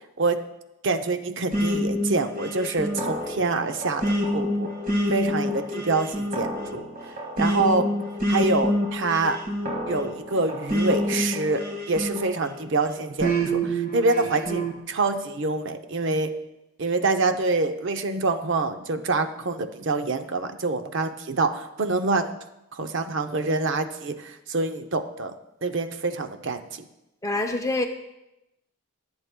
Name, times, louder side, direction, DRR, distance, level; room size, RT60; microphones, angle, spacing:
voice 1, 0.8-4.7 5.1-6.9 7.4-7.9 8.3-9.4 9.9-16.3 16.8-22.3 22.7-25.3 25.6-26.8, right 3 dB, 55° right, 8 dB, 0.6 m, -26 dB
sound 1, 1.5-12.6 13.2-14.7, equal, 40° right, 1.7 m, -27 dB
voice 2, 27.2-27.9, left 2 dB, 15° left, 5 dB, 0.6 m, -25 dB
22.0 x 7.9 x 2.2 m, 0.92 s
head